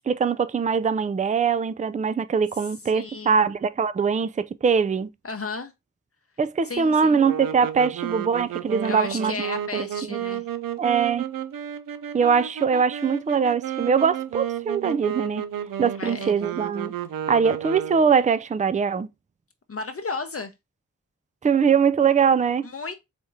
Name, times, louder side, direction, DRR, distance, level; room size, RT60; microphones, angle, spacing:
voice 1, 0.1-5.1 6.4-9.4 9.7-10.2 10.8-11.3 12.1-15.4 15.8-16.9 17.3-19.1 21.4-22.6, right 6 dB, 25° right, 0.4 m, -22 dB
voice 2, 2.9-3.4 5.2-5.7 6.6-7.2 8.8-10.4 16.0-16.5 19.7-20.5 22.6-22.9, left 4 dB, 45° left, 0.8 m, -33 dB
sound 1, 7.2-18.2, right 9 dB, 90° right, 0.5 m, -32 dB
4.3 x 2.9 x 3.5 m
cardioid pair, 40°, 32 cm